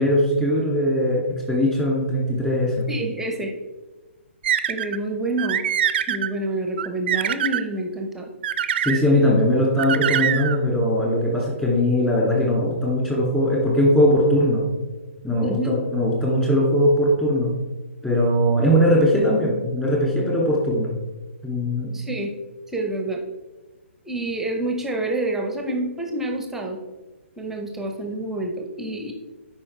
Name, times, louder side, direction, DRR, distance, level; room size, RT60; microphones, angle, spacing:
voice 1, 0.0-2.9 8.8-14.6 15.2-17.5 18.0-20.9 21.4-22.0, equal, 10° left, -3 dB, 2.3 m, -20 dB
voice 2, 2.9-3.5 4.7-5.6 6.1-8.3 15.4-15.7 21.8-22.3 22.7-23.2 24.0-26.8 27.4-29.1, right 2 dB, 5° right, 2 dB, 0.9 m, -28 dB
sound 1, 4.4-5.0 5.4-6.3 6.8-7.6 8.4-9.0 9.8-10.6, right 9 dB, 50° right, 0.5 m, -23 dB
11.5 x 5.2 x 3.3 m, 1.2 s
hypercardioid pair, 135°, 7 cm